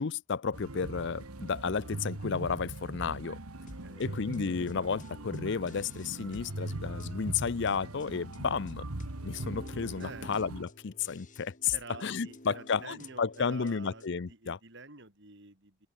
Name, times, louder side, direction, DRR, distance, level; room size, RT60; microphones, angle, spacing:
voice 1, 0.0-3.4 4.0-8.8 9.2-11.7 12.0-14.6, left 5 dB, 55° left, 0.5 m, -32 dB
sound 1, 0.5-10.6, right 1 dB, 90° right, 1.9 m, -41 dB
voice 2, 3.6-4.1 10.0-10.3 11.7-15.9, right 3 dB, 55° right, 4.5 m, -48 dB
sound 2, 3.7-14.3, left 1 dB, 35° left, 4.3 m, -53 dB
open air
head